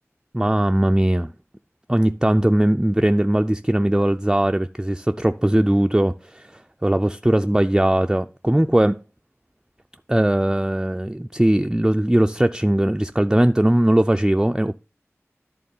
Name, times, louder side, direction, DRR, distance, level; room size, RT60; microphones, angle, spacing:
voice 1, 0.3-1.3 1.9-9.0 10.1-14.7, right 1 dB, 10° right, 0.3 m, -19 dB
11.0 x 3.7 x 5.3 m
wide cardioid pair, 40°, 5 cm